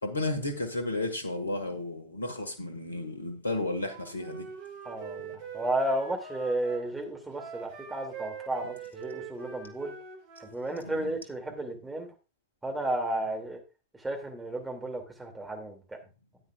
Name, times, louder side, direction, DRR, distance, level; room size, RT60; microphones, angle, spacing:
voice 1, 0.0-4.5 10.8-11.1, left 2 dB, 75° left, 1.8 m, -33 dB
Wind instrument woodwind instrument, 3.8-6.9 7.3-10.6, right 7 dB, 45° right, 2.1 m, -43 dB
voice 2, 4.8-9.9 10.5-12.1 12.6-13.6 14.0-16.0, right 1 dB, 10° right, 2.5 m, -33 dB
13.0 x 9.3 x 2.4 m
figure-of-eight pair, 90°, 0 cm